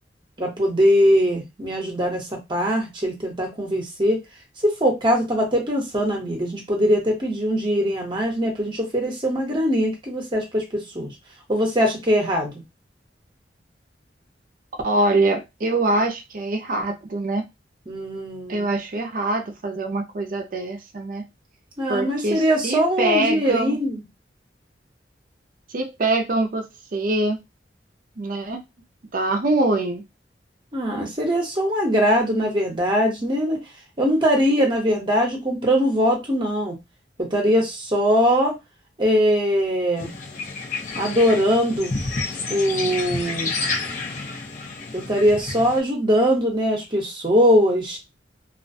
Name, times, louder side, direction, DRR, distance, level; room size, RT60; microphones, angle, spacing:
voice 1, 0.4-4.2 4.6-11.1 11.5-12.5 17.9-18.7 21.8-24.0 30.7-33.6 34.0-36.8 37.2-38.6 39.0-40.1 40.9-41.9 42.5-43.5 44.9-48.0, equal, 30° right, 1 dB, 0.9 m, -21 dB
voice 2, 14.8-17.4 18.5-21.2 21.9-23.8 25.7-27.4 28.2-28.6 29.1-30.0, right 2 dB, 50° right, 5 dB, 0.5 m, -24 dB
sound 1, 40.0-45.8, left 3 dB, 45° left, 0.7 m, -30 dB
2.4 x 2.1 x 2.6 m, 0.21 s
head